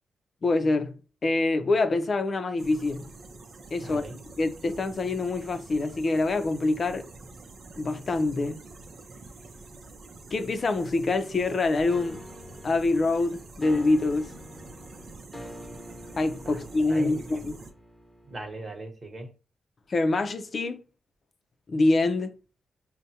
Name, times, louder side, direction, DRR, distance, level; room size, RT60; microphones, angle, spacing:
voice 1, 0.4-3.1 3.7-4.0 4.4-7.0 7.8-8.6 10.3-12.2 12.6-14.3 16.2-17.6 19.9-20.8 21.7-22.3, left 2 dB, 50° left, 0.5 m, -25 dB
sound 1, 2.6-17.7, right 3 dB, 65° right, 0.6 m, -47 dB
voice 2, 3.8-4.1 16.4-16.6 16.9-17.4 18.3-19.3, right 2 dB, 40° right, 1.1 m, -39 dB
sound 2, 11.9-18.7, left 1 dB, 15° left, 1.0 m, -46 dB
5.3 x 2.1 x 2.8 m
cardioid pair, 65°, 0 cm